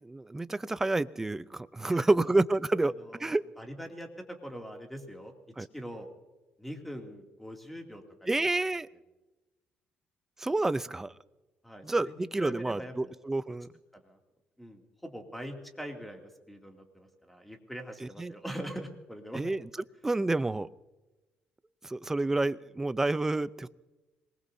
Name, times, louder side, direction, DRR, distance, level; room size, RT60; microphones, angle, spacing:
voice 1, 0.0-2.9 3.2-3.4 5.6-5.7 8.3-8.9 10.4-11.1 11.8-13.7 18.2-18.3 19.3-19.6 20.0-20.7 21.8-23.7, right 2 dB, 10° right, 16 dB, 0.5 m, -29 dB
voice 2, 1.8-2.3 2.8-5.3 5.7-6.1 6.6-8.3 11.6-13.2 14.0-14.2 14.6-19.4, equal, 5° left, 3 dB, 2.5 m, -43 dB
26.5 x 20.0 x 2.7 m, 1.1 s
cardioid pair, 115°, 3 cm